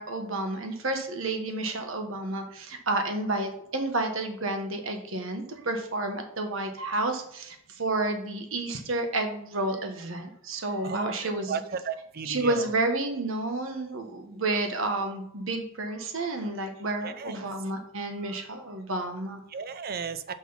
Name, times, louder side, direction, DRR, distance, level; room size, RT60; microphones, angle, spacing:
voice 1, 0.0-11.6 12.2-19.4, right 2 dB, 70° right, 5 dB, 1.4 m, -30 dB
voice 2, 10.8-12.8 17.0-17.4 19.5-20.3, right 6 dB, 45° right, 12 dB, 0.5 m, -35 dB
6.1 x 6.0 x 5.7 m, 0.71 s
head